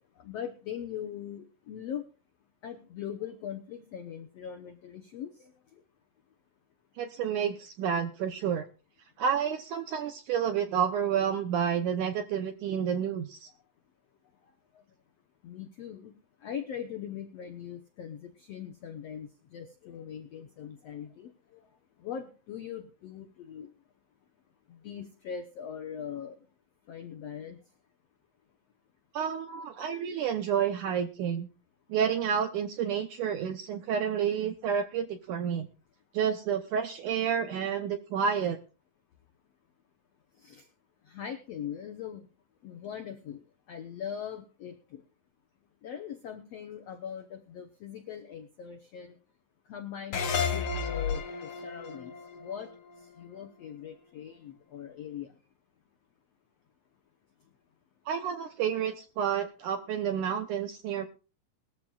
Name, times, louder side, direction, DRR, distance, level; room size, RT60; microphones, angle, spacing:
voice 1, 0.2-2.0 2.6-5.5 15.4-16.2 16.4-21.6 22.0-23.7 24.7-26.4 26.9-27.6 40.4-40.7 41.0-42.3 42.6-45.0 45.8-49.2 49.7-52.1 52.4-52.7 53.1-55.3, left 8 dB, 75° left, 6 dB, 1.4 m, -41 dB
voice 2, 7.0-8.7 9.2-13.5 29.1-31.5 31.9-35.7 36.1-38.6 58.1-61.1, right 8 dB, 75° right, 8 dB, 1.8 m, -30 dB
sound 1, 50.1-53.4, left 6 dB, 55° left, 1.5 m, -32 dB
20.5 x 13.5 x 2.4 m, 0.35 s
omnidirectional pair, 4.5 m